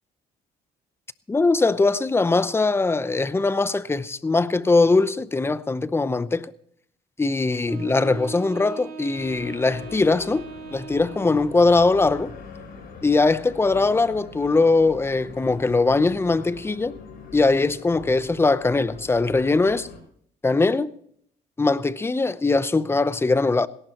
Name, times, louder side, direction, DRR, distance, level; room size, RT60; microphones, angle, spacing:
voice 1, 1.3-6.5 7.2-12.4 13.0-17.0 17.3-19.9 20.4-20.9 21.6-23.7, left 3 dB, 15° left, 0.7 m, -21 dB
Wind instrument woodwind instrument, 7.7-11.8, right 5 dB, 60° right, 2.3 m, -39 dB
sound 1, 9.1-20.0, left 5 dB, 65° left, 7.3 m, -43 dB
18.0 x 18.0 x 2.9 m
cardioid pair, 110°, 17 cm